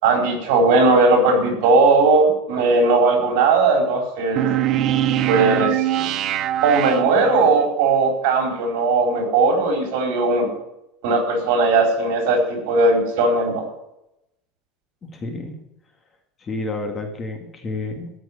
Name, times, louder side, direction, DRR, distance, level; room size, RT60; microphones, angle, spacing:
voice 1, 0.0-4.5 5.3-5.9 6.6-10.5 11.0-13.6, right 3 dB, 70° right, 3 dB, 4.4 m, -18 dB
sound 1, 4.4-7.6, right 12 dB, 40° right, 0.6 m, -22 dB
voice 2, 15.1-15.6 16.4-18.1, left 2 dB, 20° left, 4 dB, 2.0 m, -30 dB
14.0 x 6.3 x 9.5 m, 0.87 s
cardioid pair, 160°, 0 cm